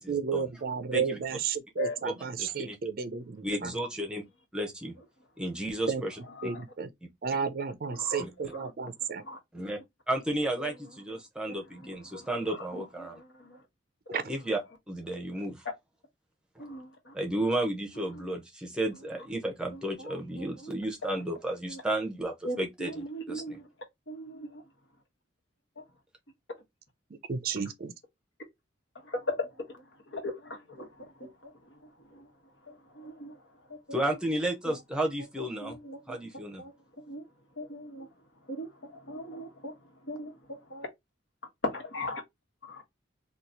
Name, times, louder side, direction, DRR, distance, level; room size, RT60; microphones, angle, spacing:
voice 1, 0.0-3.7 5.9-6.0 6.4-6.9 7.2-9.2 14.1-14.2 27.3-27.9, right 6 dB, 50° right, 0.4 m, -32 dB
voice 2, 2.4-2.8 3.4-4.2 4.5-4.9 5.4-6.2 9.5-9.8 10.1-13.1 14.3-14.6 14.9-15.6 16.6-16.7 17.1-23.6 33.9-35.8 36.1-36.6, right 1 dB, 5° right, 0.7 m, -32 dB
voice 3, 11.5-13.6 16.6-17.1 18.1-18.3 19.7-20.7 21.1-21.2 21.7-21.8 22.4-23.7 24.1-24.6 29.0-31.8 32.1-32.3 32.7-33.4 33.7-34.2 34.7-34.8 35.4-36.7 37.1-37.2 37.6-38.1 38.5-39.7 40.0-40.9 41.6-42.2 42.7-42.8, left 1 dB, 70° left, 1.2 m, -39 dB
2.9 x 2.4 x 3.7 m
head